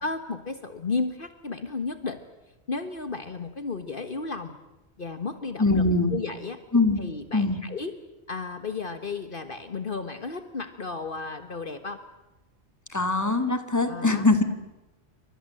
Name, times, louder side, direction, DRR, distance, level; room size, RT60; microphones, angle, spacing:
voice 1, 0.0-2.2 2.7-4.6 5.0-5.8 6.1-6.6 7.0-8.0 8.3-12.0 13.8-14.3, left 4 dB, 50° left, 9 dB, 1.6 m, -33 dB
voice 2, 5.6-6.1 6.7-7.0 7.3-7.6 12.9-14.4, left 2 dB, 15° left, 8 dB, 2.2 m, -22 dB
29.0 x 25.0 x 7.8 m, 1.0 s
omnidirectional pair, 1.1 m